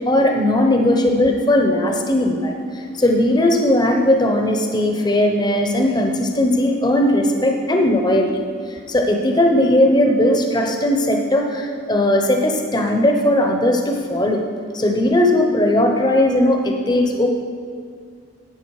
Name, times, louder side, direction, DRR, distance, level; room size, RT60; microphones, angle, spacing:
voice 1, 0.1-8.3 8.7-14.4 14.7-17.3, left 1 dB, 20° left, 3 dB, 0.8 m, -18 dB
12.0 x 8.5 x 4.8 m, 2.1 s
head